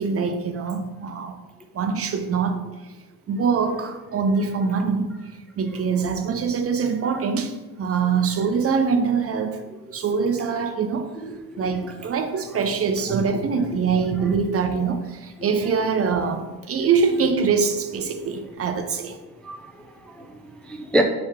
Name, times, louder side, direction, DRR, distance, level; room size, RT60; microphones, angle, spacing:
voice 1, 0.0-1.4 1.7-2.6 3.3-5.1 5.6-9.6 9.9-11.2 11.6-19.2, right 5 dB, 40° right, 0.6 m, -24 dB
voice 2, 11.7-12.1 13.3-13.4 15.4-15.5 17.1-17.3 19.4-21.0, equal, 5° left, 0.3 m, -28 dB
3.6 x 3.1 x 4.5 m
supercardioid pair, 75°, 35 cm